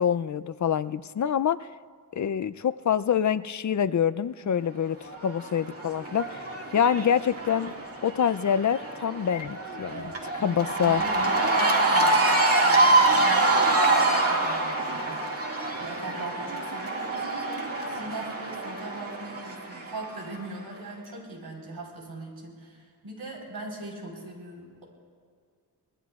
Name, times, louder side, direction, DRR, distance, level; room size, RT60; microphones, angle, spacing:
voice 1, 0.0-1.6 2.1-5.0 5.2-6.4 6.7-7.7 8.0-11.0, left 8 dB, 45° left, 14 dB, 0.5 m, -26 dB
Cheering / Crowd, 5.1-20.4, right 2 dB, 35° right, 2.1 m, -26 dB
voice 2, 10.4-15.2 15.8-24.8, right 2 dB, 65° right, -1 dB, 4.3 m, -40 dB
25.0 x 20.0 x 2.4 m, 2.1 s
cardioid pair, 60°, 40 cm